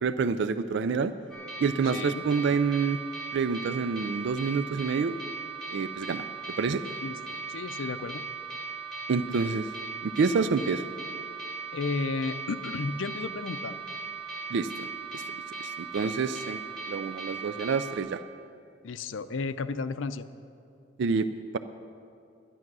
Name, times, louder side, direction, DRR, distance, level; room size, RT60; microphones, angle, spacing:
voice 1, 0.0-1.1 1.6-3.0 3.3-5.2 5.7-6.2 6.6-6.8 9.1-9.7 10.0-10.8 14.5-14.9 15.1-15.2 15.6-16.6 16.9-18.2 21.0-21.3, right 5 dB, 65° right, 12 dB, 0.4 m, -27 dB
sound 1, 1.3-18.0, right 4 dB, 5° left, 3.4 m, -38 dB
voice 2, 1.9-2.2 7.0-8.2 11.7-13.8 18.8-20.3, left 4 dB, 75° left, 11 dB, 0.5 m, -33 dB
12.0 x 11.0 x 6.1 m, 2.5 s
head